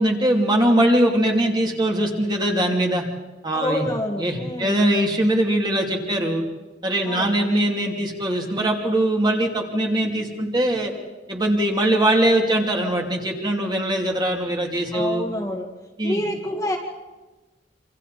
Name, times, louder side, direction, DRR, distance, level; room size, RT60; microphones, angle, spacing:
voice 1, 0.0-3.0 3.4-3.8 4.2-6.4 6.8-10.9 11.3-15.3 16.0-16.2, right 1 dB, 25° right, 0 dB, 2.9 m, -21 dB
voice 2, 3.5-4.9 7.1-7.4 14.9-15.7 16.0-16.8, left 1 dB, 20° left, 1 dB, 1.9 m, -27 dB
26.5 x 26.0 x 4.2 m, 1.2 s
head